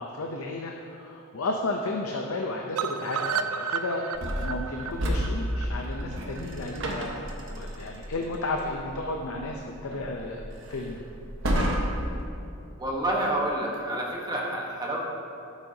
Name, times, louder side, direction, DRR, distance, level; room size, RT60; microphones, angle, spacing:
voice 1, 0.0-4.1 4.4-7.2 7.5-10.4 10.7-11.0, left 2 dB, 80° left, 1 dB, 0.6 m, -33 dB
sound 1, 2.8-6.8 7.1-7.2 7.5-7.6 7.9-8.0, right 6 dB, 80° right, 0.4 m, -33 dB
sound 2, 4.1-12.2, equal, 60° right, 1.2 m, -32 dB
voice 2, 12.8-15.0, right 1 dB, 20° right, -2 dB, 1.1 m, -28 dB
13.0 x 7.2 x 2.8 m, 2.8 s
head